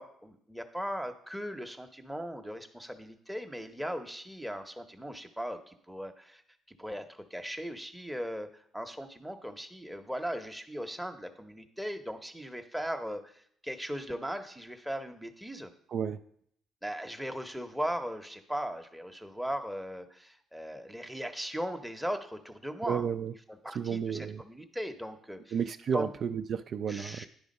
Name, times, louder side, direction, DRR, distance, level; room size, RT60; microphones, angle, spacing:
voice 1, 0.0-6.4 6.8-15.7 16.8-23.1 23.5-25.6 25.9-26.1 26.9-27.3, equal, ahead, 5 dB, 0.8 m, -38 dB
voice 2, 22.9-23.3 23.7-24.4 25.5-27.3, right 7 dB, 55° right, 8 dB, 0.3 m, -32 dB
10.0 x 3.5 x 5.3 m, 0.67 s
cardioid pair, 90°, 0 cm